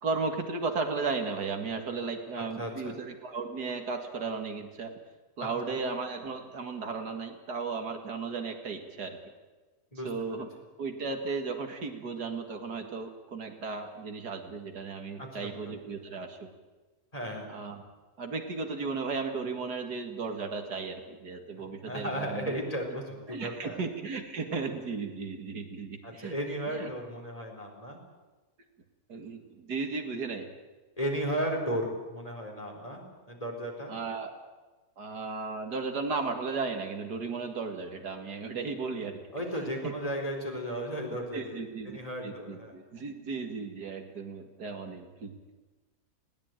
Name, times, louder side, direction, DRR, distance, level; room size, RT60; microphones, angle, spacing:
voice 1, 0.0-4.9 5.4-9.2 10.0-10.5 10.8-16.5 17.5-17.8 18.2-22.5 23.3-26.4 26.7-26.9 29.1-30.5 33.9-34.3 35.0-39.2 39.6-39.9 41.3-42.0 42.2-45.4, right 4 dB, 85° right, 5 dB, 2.7 m, -35 dB
voice 2, 2.6-3.0 5.7-5.8 9.9-10.4 15.2-15.7 17.1-17.5 21.9-23.8 26.0-28.0 31.0-33.9 39.3-42.8, equal, 20° left, 1 dB, 4.1 m, -35 dB
20.0 x 17.5 x 9.1 m, 1.2 s
omnidirectional pair, 1.7 m